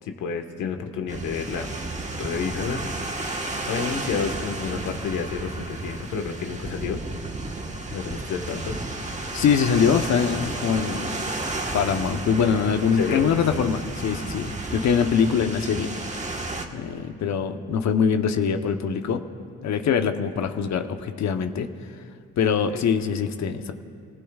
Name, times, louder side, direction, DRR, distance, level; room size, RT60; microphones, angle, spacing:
voice 1, 0.0-1.7 2.1-2.8 3.7-7.0 7.9-8.8 12.9-13.3 22.7-22.8, left 6 dB, 85° left, 4 dB, 1.5 m, -30 dB
sound 1, 1.1-16.7, right 2 dB, 25° right, 1.3 m, -32 dB
voice 2, 9.3-11.1 11.7-15.9 16.7-19.2 19.6-21.7 22.4-23.7, left 7 dB, 65° left, 7 dB, 1.0 m, -23 dB
29.0 x 15.5 x 2.4 m, 2.3 s
cardioid pair, 90°, 30 cm